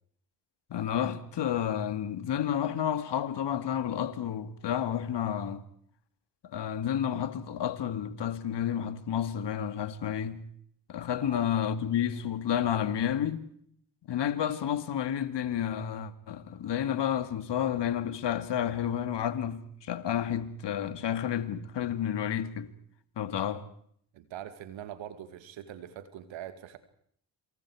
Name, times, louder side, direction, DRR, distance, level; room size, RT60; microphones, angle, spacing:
voice 1, 0.7-5.6 6.5-10.5 10.9-13.5 14.1-22.7 23.2-23.7, left 9 dB, 60° left, 2.3 m, -30 dB
voice 2, 24.1-26.8, right 11 dB, 75° right, 2.5 m, -43 dB
28.0 x 27.0 x 4.9 m
hypercardioid pair, 45°, 46 cm